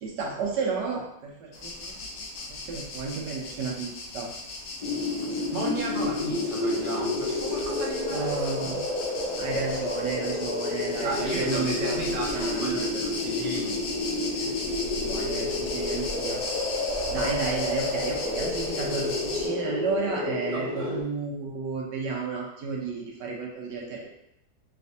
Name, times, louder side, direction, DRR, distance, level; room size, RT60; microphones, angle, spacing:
voice 1, 0.0-4.3 8.1-8.8 9.4-12.0 12.3-12.8 14.3-14.5 15.0-16.4 17.1-24.1, right 4 dB, 70° right, -1 dB, 1.3 m, -32 dB
sound 1, 1.5-19.5, left 2 dB, 70° left, 0.8 m, -37 dB
sound 2, 4.8-21.0, left 2 dB, 90° left, 0.3 m, -30 dB
voice 2, 5.4-8.8 11.0-13.8 20.5-21.0, right 2 dB, 85° right, -3 dB, 0.4 m, -35 dB
3.3 x 3.2 x 2.7 m, 0.78 s
omnidirectional pair, 2.0 m